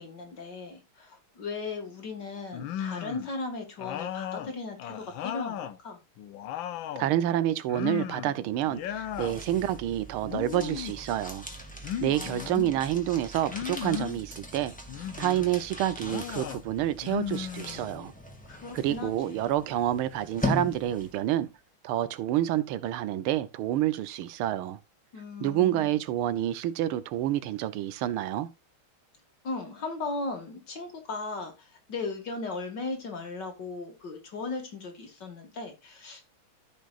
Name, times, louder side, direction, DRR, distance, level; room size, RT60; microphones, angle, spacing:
voice 1, 0.0-6.0 12.1-12.8 18.5-19.5 25.1-26.0 29.4-36.2, left 3 dB, 55° left, 2.5 m, -37 dB
sound 1, 2.5-3.3 3.8-5.8 6.2-7.1 7.7-8.4 8.7-9.4 10.2-11.0 11.8-12.7 13.5-14.2 14.9-15.5 16.0-16.6 17.0-18.1, left 10 dB, 70° left, 1.4 m, -36 dB
voice 2, 7.0-11.4 12.0-14.7 15.2-18.1 18.7-21.5 21.8-24.8 25.4-28.5, right 12 dB, 80° right, 1.6 m, -28 dB
sound 2, 8.8-21.3, left 1 dB, 5° left, 1.8 m, -40 dB
14.5 x 5.5 x 2.4 m
omnidirectional pair, 2.3 m